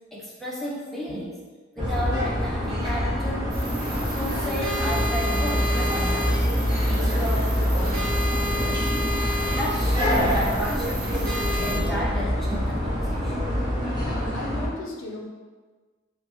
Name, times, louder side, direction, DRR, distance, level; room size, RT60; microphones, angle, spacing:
voice 1, 0.1-1.4 1.8-3.5 4.1-6.6 6.9-8.9 9.5-13.5, equal, ahead, -6 dB, 0.4 m, -33 dB
sound 1, 1.8-14.7, equal, 20° right, 0.8 m, -25 dB
sound 2, 3.5-11.8, left 1 dB, 90° right, 0.7 m, -32 dB
voice 2, 13.9-15.3, left 2 dB, 70° left, 0 dB, 0.5 m, -36 dB
3.1 x 2.0 x 2.9 m, 1.4 s
head